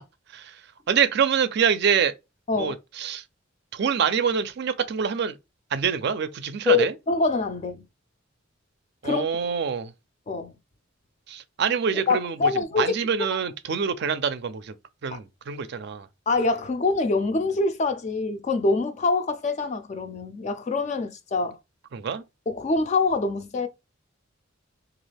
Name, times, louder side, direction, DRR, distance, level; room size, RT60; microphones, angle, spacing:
voice 1, 0.9-2.1 2.6-3.2 3.7-5.4 5.7-6.9 9.0-9.9 11.3-12.5 12.8-14.7 15.0-16.1 21.9-22.2, right 7 dB, 55° right, 0.4 m, -25 dB
voice 2, 6.7-7.9 9.0-9.2 10.3-10.5 12.1-12.9 13.2-13.3 15.1-15.2 16.3-21.6 22.5-23.7, left 3 dB, 35° left, 0.4 m, -25 dB
3.0 x 2.4 x 3.2 m
head